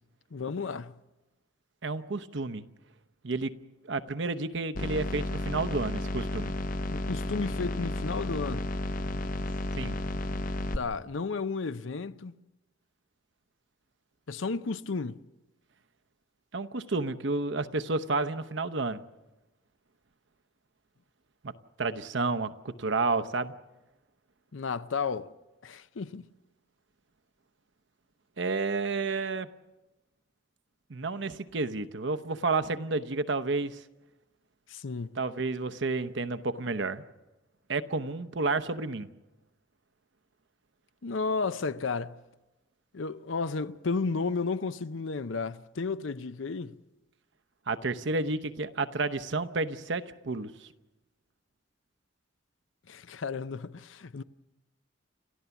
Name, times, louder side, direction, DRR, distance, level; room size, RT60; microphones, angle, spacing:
voice 1, 0.3-0.9 6.9-8.7 10.7-12.3 14.3-15.2 24.5-25.3 25.6-26.3 34.7-35.2 41.0-42.2 42.9-46.8 52.9-54.2, left 4 dB, 80° left, 0.6 m, -33 dB
voice 2, 1.8-2.7 3.2-3.5 3.8-6.5 9.8-10.0 16.5-19.0 21.4-21.5 21.8-23.5 28.4-29.5 30.9-33.8 35.2-37.0 37.7-39.1 47.7-50.7, right 3 dB, 65° right, 0.8 m, -31 dB
sound 1, 4.8-10.8, left 1 dB, 45° left, 0.8 m, -32 dB
29.5 x 13.5 x 7.0 m
head